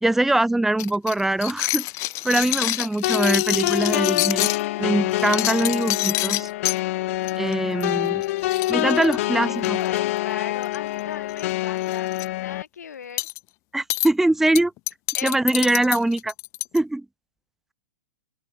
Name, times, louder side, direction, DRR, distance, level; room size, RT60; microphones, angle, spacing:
voice 1, 0.0-1.9 2.2-4.5 4.8-6.5 7.4-8.2 8.7-9.8 13.7-14.7 15.2-16.3 16.7-17.0, right 2 dB, 5° right, 0.9 m, -22 dB
sound 1, 0.8-4.6 5.1-6.8 7.3-7.5 7.8-7.9 8.2-8.3 8.5-9.9 10.6-11.0 11.3-11.4 11.8-12.2 13.2-13.4 13.9-14.1 14.5-16.8, left 22 dB, 35° left, 0.6 m, -27 dB
sound 2, 3.0-12.6, left 17 dB, 55° left, 1.2 m, -26 dB
voice 2, 9.0-13.3 15.1-15.4, left 7 dB, 80° left, 5.6 m, -38 dB
open air
hypercardioid pair, 115°, 9 cm